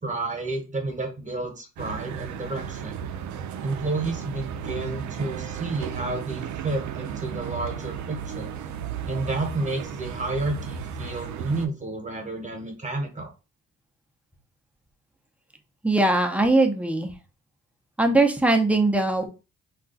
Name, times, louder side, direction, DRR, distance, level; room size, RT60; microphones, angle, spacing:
voice 1, 0.0-2.9 3.6-8.5 9.0-13.3, right 2 dB, 25° right, 3 dB, 1.1 m, -31 dB
sound 1, 1.8-11.7, right 8 dB, 70° right, 0.5 m, -34 dB
voice 2, 15.8-17.1 18.0-19.3, right 2 dB, 5° right, 4 dB, 0.6 m, -20 dB
2.4 x 2.2 x 3.8 m, 0.29 s
cardioid pair, 90°, 30 cm